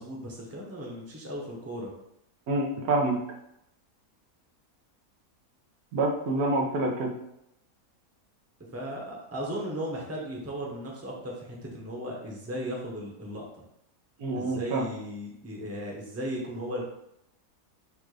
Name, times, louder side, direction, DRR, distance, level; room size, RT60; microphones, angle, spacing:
voice 1, 0.0-1.9 8.7-13.4 14.3-16.8, equal, 15° right, -2 dB, 0.7 m, -36 dB
voice 2, 2.5-3.2 5.9-7.1 14.2-14.8, right 2 dB, 90° right, 0 dB, 1.3 m, -27 dB
4.3 x 2.5 x 4.7 m, 0.80 s
omnidirectional pair, 1.5 m